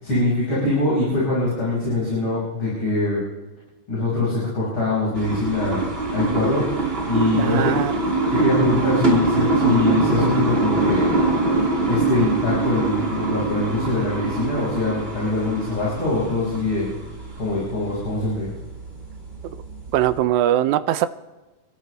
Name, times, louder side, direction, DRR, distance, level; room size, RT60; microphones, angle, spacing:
voice 1, 0.0-3.2 3.9-5.8 6.1-6.7 7.1-7.7 8.3-11.2 11.9-16.9 17.4-18.5, left 2 dB, 40° left, -8 dB, 6.2 m, -23 dB
sound 1, 5.1-20.2, right 3 dB, 20° right, 2.3 m, -24 dB
voice 2, 7.3-7.9 19.9-21.1, right 12 dB, 80° right, 13 dB, 1.9 m, -21 dB
28.0 x 13.5 x 3.4 m, 1.1 s
omnidirectional pair, 3.6 m